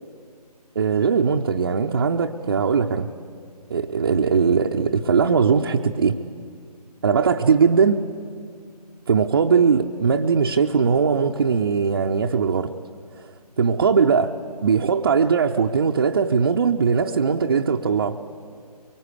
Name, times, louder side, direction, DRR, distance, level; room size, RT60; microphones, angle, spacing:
voice 1, 0.8-3.1 3.7-6.2 7.0-8.0 9.1-12.7 13.2-13.3 13.6-14.3 14.6-18.2, right 6 dB, 35° right, 1 dB, 0.7 m, -20 dB
24.0 x 23.0 x 8.4 m, 2.2 s
figure-of-eight pair, 150°, 21 cm